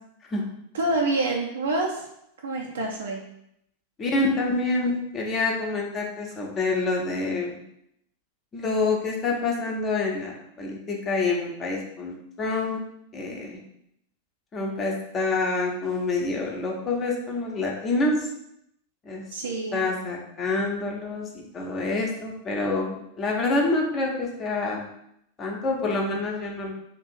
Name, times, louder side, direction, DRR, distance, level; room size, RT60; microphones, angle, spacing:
voice 1, 0.7-2.0 2.4-3.2 19.3-19.8, right 2 dB, 65° right, -1 dB, 0.5 m, -27 dB
voice 2, 4.0-7.6 8.5-12.8 13.1-13.6 14.5-18.3 19.0-19.3 19.7-24.9 25.4-26.7, left 3 dB, 25° left, -1 dB, 0.9 m, -27 dB
2.9 x 2.6 x 4.4 m, 0.76 s
figure-of-eight pair, 90°, 0 cm